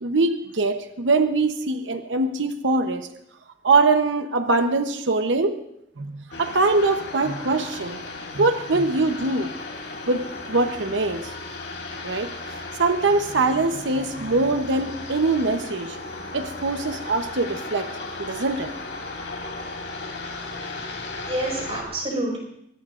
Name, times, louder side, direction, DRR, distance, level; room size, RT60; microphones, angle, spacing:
voice 1, 0.0-3.1 3.6-5.6 6.0-8.0 8.3-9.5 10.1-11.5 12.0-12.3 12.8-16.0 16.3-17.9 18.2-18.7, right 3 dB, 85° right, 8 dB, 0.9 m, -23 dB
sound 1, 6.3-21.8, left 3 dB, 75° left, 3.2 m, -36 dB
voice 2, 20.9-22.4, right 1 dB, 30° right, -1 dB, 5.1 m, -30 dB
22.5 x 18.5 x 2.5 m, 0.77 s
head